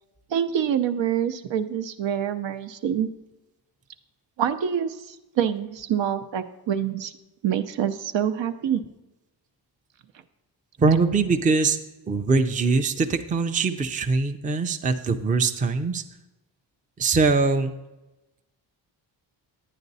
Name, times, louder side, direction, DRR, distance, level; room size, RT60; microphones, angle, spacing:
voice 1, 0.3-3.1 4.4-7.1 7.4-8.8, right 9 dB, 80° right, 9 dB, 0.8 m, -26 dB
voice 2, 10.8-11.8 12.1-16.0 17.0-17.7, right 4 dB, 20° right, 7 dB, 0.4 m, -22 dB
11.0 x 9.2 x 4.1 m, 1.0 s
wide cardioid pair, 165°, 44 cm